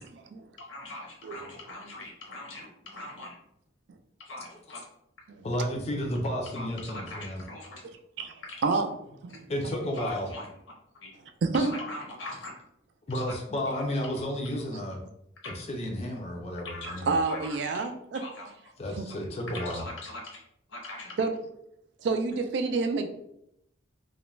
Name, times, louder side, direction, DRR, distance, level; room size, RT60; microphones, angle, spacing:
voice 1, 0.0-0.5 1.2-1.4 5.3-5.5 8.2-8.9 9.2-9.5 11.4-11.7 17.1-18.2 18.9-19.1 21.2-21.3 22.0-23.1, right 4 dB, 65° right, 7 dB, 0.3 m, -28 dB
voice 2, 0.6-3.4 4.2-4.8 6.5-7.8 8.4-8.6 9.9-10.5 11.0-11.1 11.6-12.5 13.1-13.2 13.7-13.8 15.4-15.5 16.6-16.9 17.3-17.9 18.1-18.5 19.2-20.4 20.7-21.2, left 2 dB, 85° left, -1 dB, 0.8 m, -41 dB
voice 3, 5.4-7.4 9.5-10.3 13.1-15.0 15.5-17.1 18.8-19.8, left 1 dB, 35° left, 1 dB, 0.4 m, -32 dB
2.3 x 2.1 x 3.0 m, 0.76 s
head